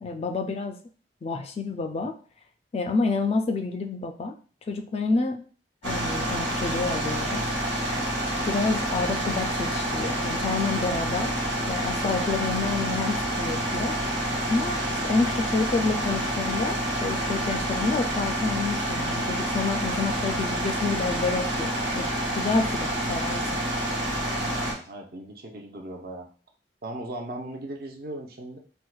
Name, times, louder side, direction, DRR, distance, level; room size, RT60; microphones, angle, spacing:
voice 1, 0.0-0.8 1.2-2.2 2.7-4.3 4.7-5.4 5.8-7.4 8.5-11.3 11.7-14.0 14.5-22.1 22.3-23.5, left 3 dB, 35° left, 6 dB, 0.3 m, -28 dB
sound 1, 5.8-24.7, right 1 dB, 90° right, 1.3 m, -28 dB
voice 2, 24.4-26.3 26.8-28.6, right 1 dB, 60° right, 2 dB, 0.6 m, -38 dB
4.5 x 2.1 x 2.3 m, 0.39 s
head